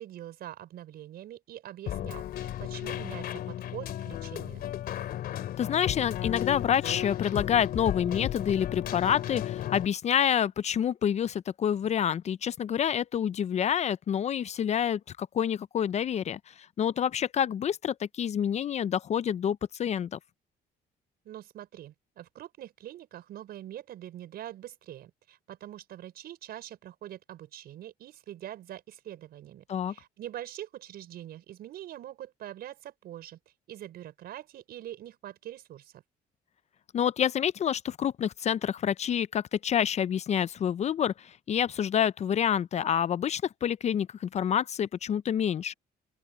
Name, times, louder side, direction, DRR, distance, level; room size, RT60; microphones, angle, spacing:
voice 1, 0.0-4.6 21.2-33.4 33.7-36.0, right 12 dB, 65° right, 5.9 m, -44 dB
Keyboard (musical), 1.9-9.9, left 12 dB, 65° left, 3.1 m, -34 dB
voice 2, 5.6-20.2 29.7-29.9 36.9-45.7, left 9 dB, 40° left, 0.5 m, -28 dB
open air
cardioid pair, 110°, 17 cm